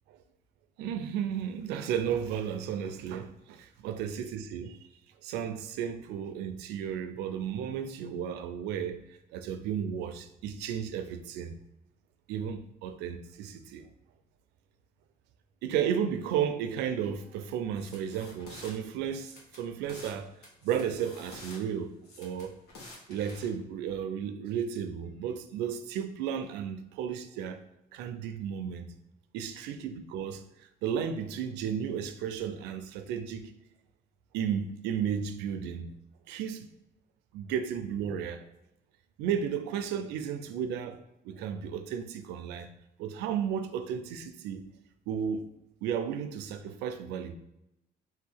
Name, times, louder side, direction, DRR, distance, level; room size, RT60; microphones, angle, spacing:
voice 1, 0.8-4.8 5.2-11.6 12.3-13.9 15.6-20.3 20.6-22.6 23.1-27.6 27.9-28.9 29.3-33.5 34.3-35.9 36.3-36.7 37.3-38.5 39.2-42.7 43.0-44.6 45.1-45.4 45.8-47.4, right 8 dB, 90° right, 0.4 m, -34 dB
sound 1, 17.8-18.7 19.2-20.2 20.4-21.6 22.0-23.5, left 2 dB, 75° left, 1.4 m, -48 dB
3.6 x 2.7 x 4.4 m
cardioid pair, 110°, 17 cm